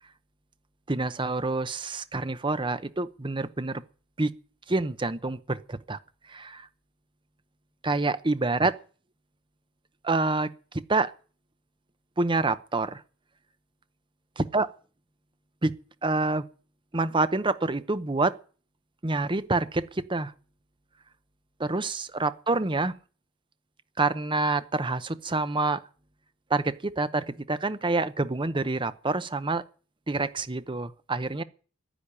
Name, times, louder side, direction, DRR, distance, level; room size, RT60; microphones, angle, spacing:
voice 1, 0.9-3.8 4.2-4.3 4.7-6.0 6.3-6.7 7.8-8.7 10.0-11.1 12.2-13.0 14.5-14.7 15.6-15.7 16.0-16.4 16.9-18.4 19.0-20.3 21.6-22.9 24.0-25.8 26.5-29.6 30.1-31.4, right 3 dB, 25° right, 0.8 m, -27 dB
10.5 x 10.5 x 9.7 m
head